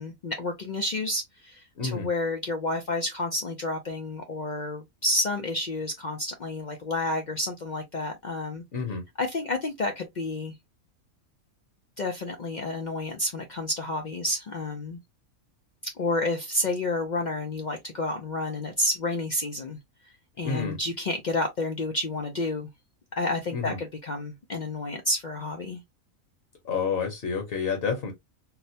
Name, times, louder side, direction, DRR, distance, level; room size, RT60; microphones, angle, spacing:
voice 1, 0.0-8.6 9.2-10.5 12.0-15.0 15.8-19.8 20.4-22.7 23.2-25.8, left 2 dB, 75° left, 0.4 m, -30 dB
voice 2, 1.8-2.1 8.7-9.0 20.4-20.8 23.5-23.8 26.6-28.1, left 5 dB, 50° left, 0.9 m, -29 dB
4.2 x 2.1 x 2.7 m
omnidirectional pair, 1.5 m